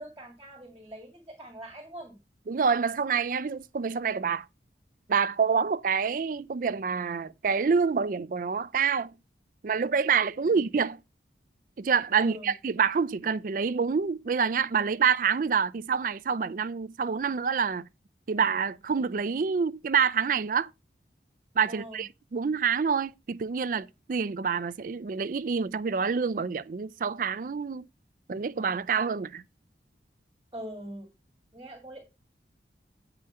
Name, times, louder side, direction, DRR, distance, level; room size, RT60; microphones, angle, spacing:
voice 1, 0.0-2.2 10.4-10.6 12.2-12.5 21.7-22.0 30.5-31.1 31.5-32.0, right 1 dB, 20° right, 2.0 m, -42 dB
voice 2, 2.5-4.5 5.1-9.1 9.6-11.0 11.8-17.9 18.3-20.7 21.6-27.9 28.3-29.4, right 6 dB, 50° right, 0.4 m, -27 dB
8.7 x 4.9 x 5.5 m
head